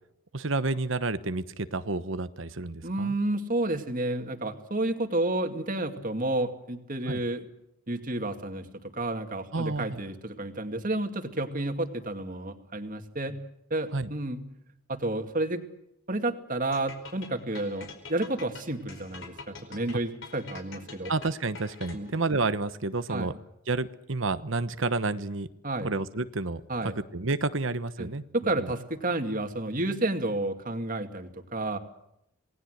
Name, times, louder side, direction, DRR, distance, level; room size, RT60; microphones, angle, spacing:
voice 1, 0.3-3.1 7.1-7.2 9.5-10.0 13.9-14.1 21.1-23.3 23.7-25.5 25.8-26.6 27.1-28.2 28.6-28.7, right 3 dB, 65° right, 12 dB, 1.1 m, -30 dB
voice 2, 2.8-7.5 7.9-13.4 13.7-14.4 14.9-15.6 16.1-21.1 21.9-22.1 23.1-23.3 25.6-25.9 26.7-26.9 28.0-31.8, right 2 dB, 40° right, 6 dB, 2.4 m, -31 dB
sound 1, 16.7-22.2, left 4 dB, 65° left, 4.9 m, -45 dB
28.0 x 19.5 x 8.0 m, 0.80 s
head